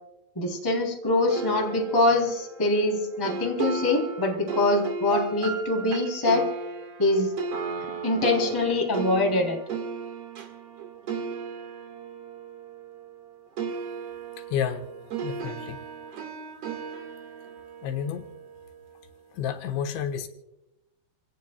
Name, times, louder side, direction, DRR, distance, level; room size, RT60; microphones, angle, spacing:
voice 1, 0.3-6.5 7.0-7.3 8.0-9.6, left 2 dB, 5° left, 1 dB, 2.2 m, -24 dB
sound 1, 1.3-13.3 13.6-18.8, right 5 dB, 55° right, 1.8 m, -36 dB
voice 2, 14.5-14.9 15.2-15.8 17.8-18.3 19.3-20.3, left 8 dB, 80° left, 5 dB, 3.5 m, -30 dB
29.0 x 17.5 x 2.3 m, 0.90 s
omnidirectional pair, 5.2 m